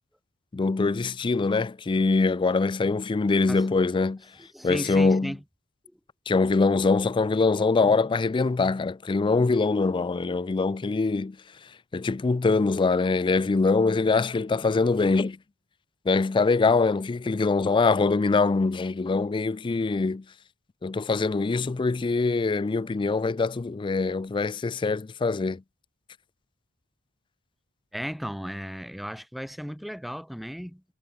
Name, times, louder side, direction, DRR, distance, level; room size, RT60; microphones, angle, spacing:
voice 1, 0.5-4.2 4.6-5.3 6.3-11.4 11.9-15.4 16.1-20.2 20.8-25.6, left 3 dB, 20° left, 0.3 m, -23 dB
voice 2, 4.4-5.4 27.9-30.8, equal, ahead, 1.3 m, -35 dB
head